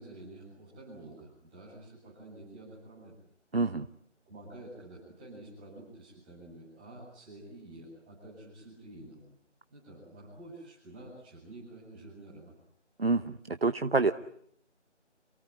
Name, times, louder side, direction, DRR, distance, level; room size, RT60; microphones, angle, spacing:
voice 1, 0.0-3.1 4.2-9.2 9.7-12.5, right 1 dB, 10° right, -6 dB, 7.4 m, -49 dB
voice 2, 3.5-3.9 13.0-14.1, right 3 dB, 55° right, 10 dB, 1.0 m, -27 dB
28.5 x 17.5 x 9.5 m, 0.70 s
figure-of-eight pair, 170°, 36 cm